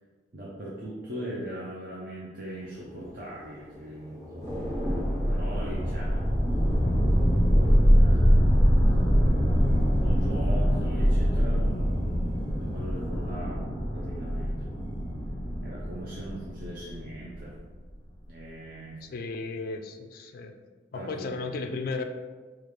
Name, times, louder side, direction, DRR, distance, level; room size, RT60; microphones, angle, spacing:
voice 1, 0.3-4.5 5.3-6.4 7.5-9.4 10.0-14.6 15.6-17.6 18.3-19.0 20.9-21.3, equal, 50° right, -6 dB, 0.6 m, -40 dB
Thunder / Rain, 2.6-12.5 12.8-13.1, equal, 20° right, 0.8 m, -40 dB
sound 1, 4.5-17.6, equal, 15° left, 0.7 m, -24 dB
voice 2, 19.0-20.5 20.9-22.0, left 3 dB, 50° left, 6 dB, 0.3 m, -34 dB
4.8 x 2.4 x 3.1 m, 1.4 s
head